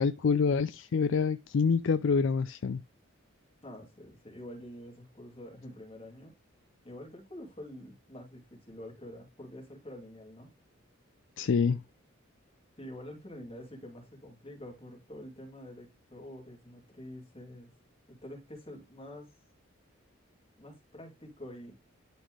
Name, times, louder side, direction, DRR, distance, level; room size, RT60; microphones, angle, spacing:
voice 1, 0.0-2.8 11.4-11.8, left 5 dB, 65° left, 0.4 m, -26 dB
voice 2, 3.6-6.3 6.8-10.5 12.8-17.7 18.1-19.4 20.6-21.7, left 1 dB, 25° left, 2.8 m, -47 dB
11.5 x 4.2 x 3.2 m
head